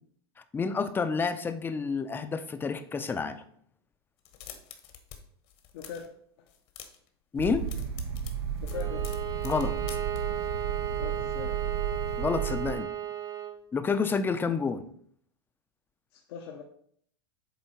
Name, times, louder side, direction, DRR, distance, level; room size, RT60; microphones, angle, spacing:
voice 1, 0.5-3.4 7.3-7.7 9.4-9.8 12.2-12.9 13.7-14.8, left 5 dB, 15° left, 10 dB, 0.5 m, -29 dB
sound 1, 4.2-5.2 5.4-6.1 6.5-7.1 7.4-10.2, left 9 dB, 45° left, 1.1 m, -47 dB
voice 2, 5.7-6.1 6.4-6.5 8.6-9.1 11.0-11.6 16.1-16.6, left 7 dB, 65° left, 2 dB, 0.8 m, -41 dB
sound 2, 7.4-12.7, right 7 dB, 80° right, 0.8 m, -33 dB
Bowed string instrument, 8.7-13.6, right 11 dB, 25° right, 0.9 m, -35 dB
7.9 x 3.0 x 4.4 m, 0.62 s
hypercardioid pair, 110°, 14 cm